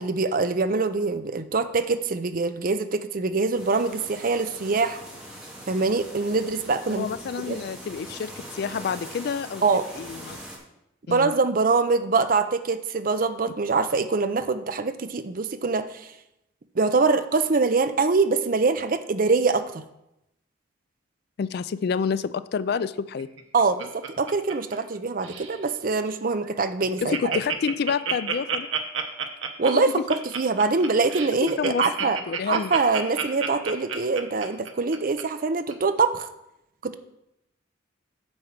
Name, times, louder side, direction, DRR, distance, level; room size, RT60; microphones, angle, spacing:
voice 1, 0.0-5.0 5.7-7.1 7.5-7.6 9.6-9.9 11.1-16.1 16.8-19.8 23.5-27.4 29.6-32.2 32.5-36.3 36.8-36.9, right 4 dB, 45° right, 10 dB, 0.6 m, -24 dB
sound 1, 3.5-10.6, right 1 dB, 5° right, 2.0 m, -42 dB
voice 2, 6.9-9.6 10.0-10.4 11.1-11.3 21.4-23.3 27.0-28.7 31.4-31.9 32.3-32.7, left 6 dB, 55° left, 15 dB, 0.3 m, -28 dB
Laughter, 23.2-25.0 25.2-25.6 26.1-26.2 26.4-26.5 26.8-35.2 35.7-35.8, right 7 dB, 90° right, 1.1 m, -30 dB
8.7 x 4.6 x 7.3 m, 0.85 s
head